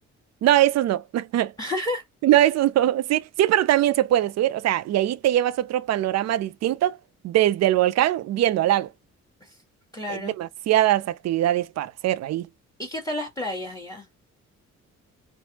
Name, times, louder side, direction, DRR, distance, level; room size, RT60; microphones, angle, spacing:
voice 1, 0.4-1.5 2.2-7.0 7.2-8.9 10.1-12.5, right 13 dB, 60° right, 0.4 m, -22 dB
voice 2, 1.6-2.0 9.4-9.6 9.9-10.3 12.8-14.1, left 1 dB, 10° left, 1.2 m, -31 dB
3.2 x 2.0 x 2.8 m
cardioid pair, 90°, 30 cm